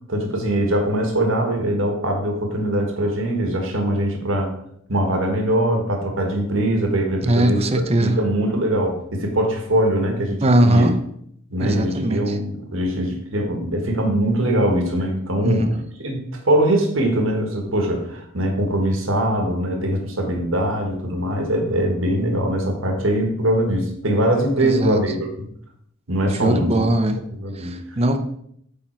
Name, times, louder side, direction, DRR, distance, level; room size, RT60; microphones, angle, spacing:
voice 1, 0.1-4.5 4.9-10.8 11.5-15.7 16.0-25.3 26.1-26.7 27.4-27.7, right 1 dB, 65° right, 2 dB, 1.3 m, -22 dB
voice 2, 7.2-8.2 10.4-10.9 11.6-12.4 15.4-15.7 24.6-25.0 26.4-27.2 27.5-28.2, right 1 dB, 30° right, 8 dB, 0.6 m, -19 dB
8.7 x 3.8 x 4.4 m, 0.72 s
head